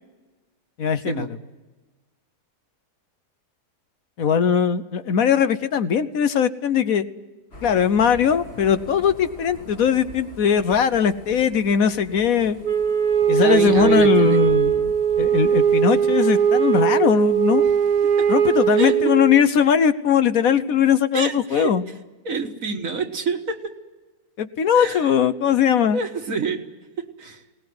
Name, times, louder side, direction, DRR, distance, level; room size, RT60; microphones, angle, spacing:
voice 1, 0.8-1.3 4.2-7.1 7.6-12.7 13.3-14.9 15.2-17.6 18.3-21.8 24.4-26.0, left 7 dB, 65° left, 11 dB, 1.3 m, -20 dB
Thunder / Rain, 7.5-19.2, left 1 dB, 40° left, 2.5 m, -43 dB
Wind instrument woodwind instrument, 12.6-19.4, right 8 dB, 75° right, 1.5 m, -19 dB
voice 2, 13.4-14.4 18.2-18.3 18.8-19.0 21.1-21.7 22.3-23.7 24.7-25.1 25.9-26.6 27.0-27.4, right 4 dB, 60° right, 5 dB, 2.0 m, -27 dB
20.5 x 18.5 x 9.6 m, 1.2 s
omnidirectional pair, 1.6 m